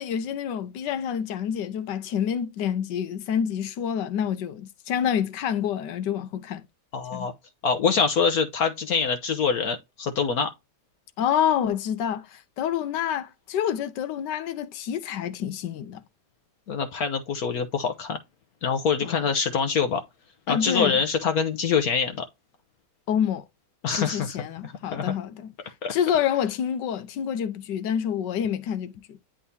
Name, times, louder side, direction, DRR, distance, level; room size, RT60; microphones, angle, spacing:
voice 1, 0.0-6.6 7.1-7.3 11.2-16.0 19.0-19.2 20.5-21.0 23.1-23.4 24.0-25.5 25.9-29.2, left 9 dB, 85° left, 1.4 m, -27 dB
voice 2, 6.9-7.3 7.6-10.5 16.7-18.2 18.6-20.0 20.5-22.2 23.8-25.1 25.8-25.9, left 6 dB, 65° left, 1.2 m, -25 dB
10.0 x 3.6 x 2.7 m
omnidirectional pair, 1.8 m